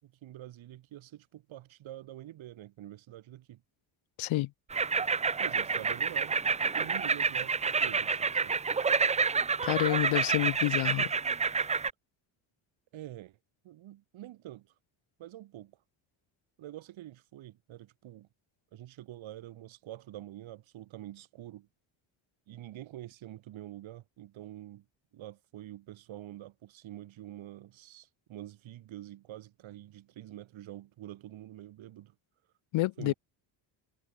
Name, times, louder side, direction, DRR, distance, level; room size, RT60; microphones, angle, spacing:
voice 1, 0.0-3.6 5.4-6.4 6.7-8.6 12.9-13.4 13.6-14.7 15.2-15.8 16.6-18.3 18.7-21.7 22.5-24.9 25.1-32.1 33.0-33.1, right 14 dB, 70° right, 5.6 m, -46 dB
voice 2, 4.2-4.5 9.6-11.1 32.7-33.1, left 17 dB, 70° left, 1.3 m, -28 dB
sound 1, 4.7-11.9, right 5 dB, 15° right, 0.5 m, -29 dB
cardioid pair, 115°, 49 cm